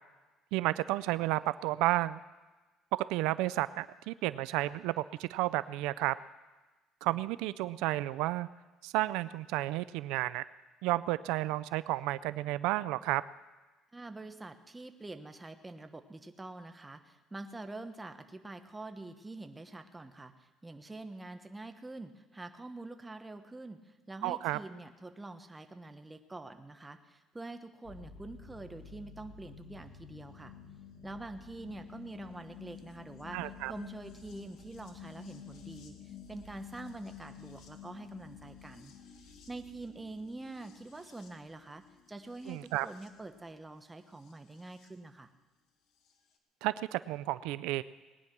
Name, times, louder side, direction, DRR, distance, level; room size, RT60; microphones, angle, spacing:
voice 1, 0.5-2.2 2.9-6.2 7.0-8.5 8.8-10.4 10.8-13.2 24.2-24.6 33.3-33.7 42.5-42.9 46.6-47.8, right 17 dB, 90° right, 16 dB, 0.4 m, -32 dB
voice 2, 13.9-30.5 31.0-33.4 33.7-38.9 39.5-45.3, right 2 dB, 10° right, 8 dB, 1.1 m, -46 dB
sound 1, 27.8-44.9 46.1-46.2, left 8 dB, 70° left, 1.7 m, -52 dB
19.5 x 9.7 x 6.0 m, 1.2 s
cardioid pair, 125°, 0 cm